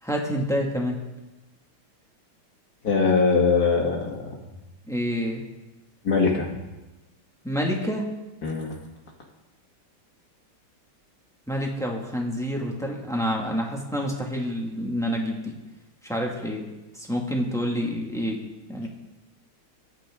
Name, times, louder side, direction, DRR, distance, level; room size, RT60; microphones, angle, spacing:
voice 1, 0.0-1.0 4.9-5.4 7.4-8.1 11.5-15.5 16.0-16.6 16.9-18.4 18.7-18.9, equal, ahead, -1 dB, 1.9 m, -28 dB
voice 2, 2.8-4.4 6.0-6.5 8.4-8.7, left 4 dB, 45° left, 0 dB, 2.6 m, -22 dB
24.5 x 9.0 x 3.8 m, 1.1 s
omnidirectional pair, 2.3 m